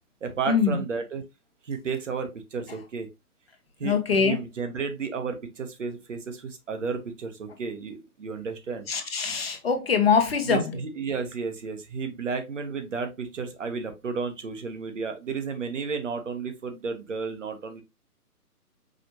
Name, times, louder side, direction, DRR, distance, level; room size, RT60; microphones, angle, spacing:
voice 1, 0.2-1.2 1.6-3.1 3.8-8.9 10.4-17.8, right 5 dB, 50° right, 1.1 m, -32 dB
voice 2, 3.8-4.4 8.9-10.6, left 6 dB, 40° left, 0.9 m, -23 dB
5.0 x 3.2 x 2.9 m
figure-of-eight pair, 145°, 46 cm